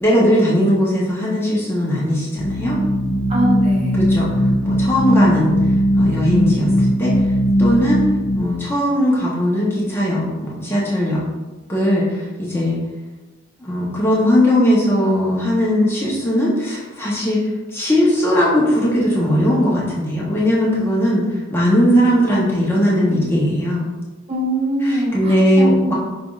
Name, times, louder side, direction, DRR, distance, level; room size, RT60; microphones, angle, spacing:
voice 1, 0.0-2.8 4.0-4.3 4.6-5.6 5.9-6.7 7.0-7.1 7.6-8.0 8.4-11.2 11.7-12.8 13.6-17.4 17.7-23.9 24.8-25.9, equal, 10° left, -6 dB, 0.8 m, -18 dB
sound 1, 2.4-8.4, equal, 55° left, 0.6 m, -18 dB
voice 2, 3.3-4.0 24.3-25.9, right 1 dB, 30° right, -4 dB, 0.7 m, -22 dB
5.0 x 3.3 x 2.4 m, 1.2 s
head